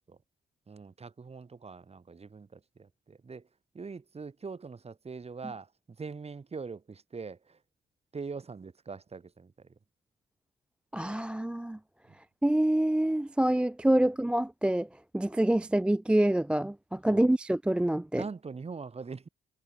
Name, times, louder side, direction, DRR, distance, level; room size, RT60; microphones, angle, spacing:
voice 1, 0.7-3.4 3.8-5.7 6.0-7.6 8.1-9.7 12.1-12.2 17.1-17.3 18.1-19.3, right 4 dB, 30° right, 3.4 m, -42 dB
voice 2, 10.9-11.8 12.4-14.9 15.1-18.2, right 1 dB, 5° right, 0.3 m, -26 dB
cardioid pair, 90°, 20 cm